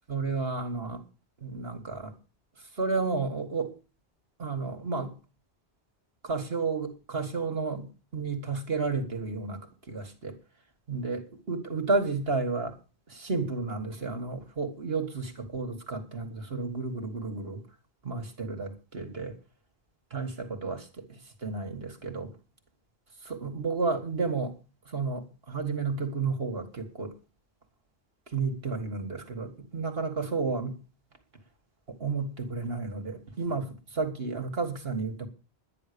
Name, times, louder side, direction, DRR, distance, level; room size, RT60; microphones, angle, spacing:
voice 1, 0.1-1.0 1.4-2.1 2.7-3.7 4.4-5.1 6.2-9.6 9.9-10.4 10.9-12.8 13.1-17.6 18.0-19.4 20.1-22.3 23.2-24.5 24.9-27.1 28.3-30.8 31.9-35.3, right 4 dB, 65° right, 2.1 m, -32 dB
11.0 x 10.0 x 6.8 m
omnidirectional pair, 1.1 m